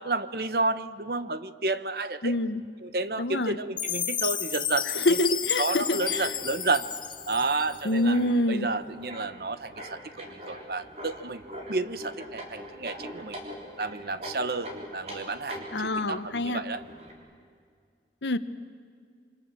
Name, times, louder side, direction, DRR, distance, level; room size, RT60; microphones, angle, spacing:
voice 1, 0.0-2.3 2.8-5.2 5.6-6.9 7.3-8.2 8.5-11.4 11.7-13.4 13.8-16.8, right 3 dB, 60° right, 13 dB, 0.9 m, -31 dB
voice 2, 2.2-2.6 3.2-3.6 5.0-6.3 7.8-8.7 15.7-16.6 18.2-18.4, left 1 dB, 85° left, 12 dB, 1.1 m, -26 dB
Chime, 3.8-8.0, left 8 dB, 25° left, 1.0 m, -32 dB
sound 1, 6.0-17.1, equal, 35° right, 4.0 m, -43 dB
26.5 x 25.5 x 7.7 m, 2.2 s
head